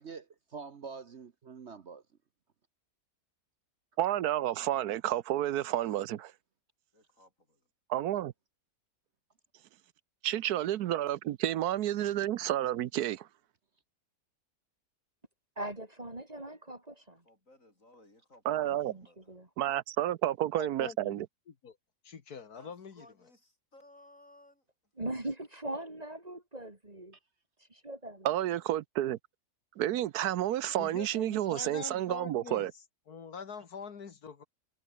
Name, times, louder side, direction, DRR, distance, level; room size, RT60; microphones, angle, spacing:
voice 1, 0.0-2.0, right 5 dB, 50° right, 1.2 m, -45 dB
voice 2, 4.0-6.3 7.9-8.3 10.2-13.3 18.5-18.9 19.6-21.3 28.2-29.2 29.8-32.7, right 12 dB, 80° right, 1.2 m, -30 dB
voice 3, 6.9-7.7 17.2-19.3 22.5-24.9, left 1 dB, 55° left, 8.5 m, -60 dB
voice 4, 15.6-17.2 18.7-19.5 25.0-27.1 27.7-28.3, right 1 dB, 25° right, 2.7 m, -40 dB
voice 5, 20.5-21.2 21.6-21.8 22.0-23.1 30.8-32.7 33.1-34.5, left 6 dB, 75° left, 2.2 m, -44 dB
omnidirectional pair, 1.6 m